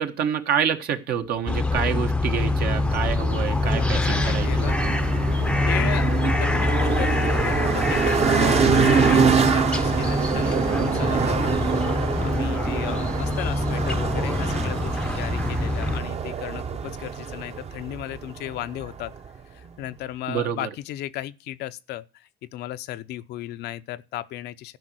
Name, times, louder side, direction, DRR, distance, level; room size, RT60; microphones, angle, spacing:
voice 1, 0.0-4.9 11.1-11.6 20.3-20.7, right 8 dB, 65° right, 1.5 m, -27 dB
sound 1, 1.5-16.0, left 2 dB, 5° left, 0.6 m, -25 dB
sound 2, 1.9-19.4, right 6 dB, 40° right, 0.9 m, -25 dB
voice 2, 3.6-4.8 5.6-19.1 19.5-24.8, left 14 dB, 75° left, 0.7 m, -35 dB
12.0 x 5.3 x 7.7 m
cardioid pair, 110°, 17 cm